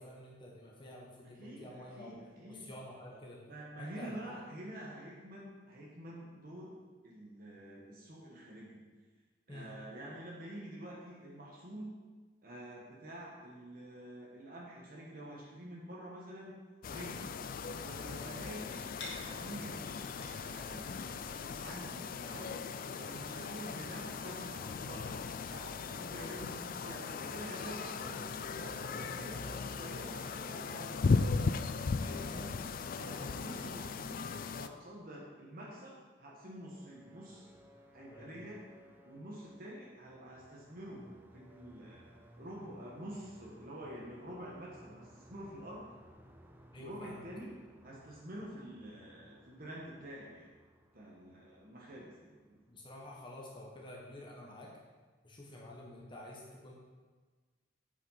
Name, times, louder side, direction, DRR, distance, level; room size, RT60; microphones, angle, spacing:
voice 1, 0.0-2.2 2.5-3.4 3.8-4.5 9.5-9.7 18.1-18.4 32.0-32.6 33.2-33.4 38.1-38.4 46.7-47.2 52.7-54.7 55.2-56.7, left 1 dB, 25° left, -3 dB, 1.2 m, -49 dB
voice 2, 1.4-2.7 3.1-3.2 3.5-6.8 7.0-8.8 9.5-12.0 12.4-16.6 16.9-17.3 17.8-18.8 19.2-19.9 20.3-22.6 23.0-25.2 25.5-31.3 32.1-32.5 32.9-34.2 34.6-37.5 37.9-38.6 39.0-41.1 41.3-45.8 46.8-47.5 47.8-50.5 50.9-52.6, right 1 dB, 50° right, -4 dB, 1.4 m, -48 dB
sound 1, 16.8-34.7, left 4 dB, 45° left, 0.4 m, -37 dB
sound 2, 18.7-24.9, left 2 dB, 65° left, 2.1 m, -54 dB
sound 3, 36.4-53.3, equal, 10° right, 0.6 m, -61 dB
8.4 x 5.6 x 5.6 m, 1.4 s
head